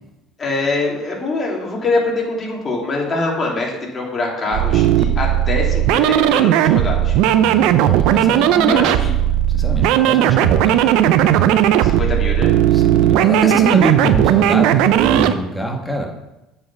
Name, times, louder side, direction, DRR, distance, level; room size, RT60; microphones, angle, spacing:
voice 1, 0.4-7.2 8.7-9.1 11.8-12.5, left 2 dB, 35° left, -1 dB, 3.0 m, -23 dB
sound 1, 4.5-15.3, right 11 dB, 70° right, 0.5 m, -15 dB
voice 2, 7.3-9.0 9.5-10.9 12.7-16.1, equal, 5° left, 1 dB, 1.8 m, -25 dB
8.0 x 5.5 x 5.8 m, 0.96 s
hypercardioid pair, 75°, 0 cm